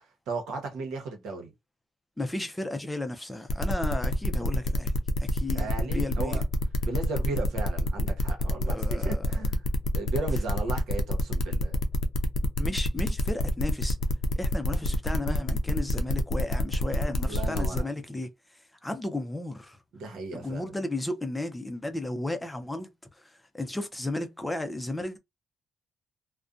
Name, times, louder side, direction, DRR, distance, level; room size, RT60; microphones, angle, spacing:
voice 1, 0.3-1.5 5.5-6.4 6.8-9.6 9.9-11.8 16.9-17.9 19.9-20.7, right 3 dB, 80° right, 0.9 m, -36 dB
voice 2, 2.2-4.9 5.2-6.4 8.6-9.3 12.6-14.0 14.4-18.3 18.8-19.8 20.3-22.9 23.2-25.2, left 2 dB, 10° left, 0.5 m, -34 dB
sound 1, 3.5-17.8, left 2 dB, 65° left, 0.5 m, -28 dB
2.5 x 2.1 x 2.4 m
cardioid pair, 90°, 0 cm